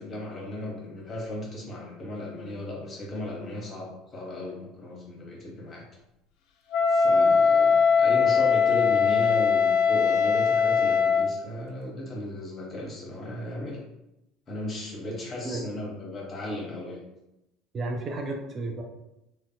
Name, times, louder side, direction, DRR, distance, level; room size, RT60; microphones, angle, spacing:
voice 1, 0.0-5.8 6.9-13.8 14.5-17.0, left 1 dB, 35° left, -3 dB, 0.9 m, -36 dB
Wind instrument woodwind instrument, 6.7-11.3, left 6 dB, 60° left, 0.3 m, -21 dB
voice 2, 17.7-18.8, right 2 dB, 35° right, 1 dB, 0.4 m, -32 dB
2.5 x 2.0 x 2.7 m, 0.91 s
figure-of-eight pair, 65°, 0 cm